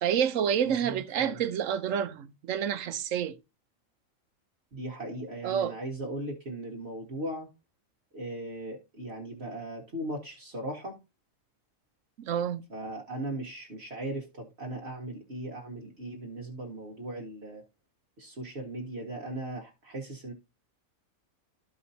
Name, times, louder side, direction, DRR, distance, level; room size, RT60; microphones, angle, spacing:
voice 1, 0.0-3.4 5.4-5.8 12.2-12.6, right 8 dB, 70° right, 1.1 m, -28 dB
voice 2, 0.7-1.4 4.7-7.5 8.1-11.0 12.7-17.6 18.2-20.3, right 1 dB, 50° right, 1.7 m, -38 dB
13.5 x 4.8 x 2.7 m
omnidirectional pair, 1.4 m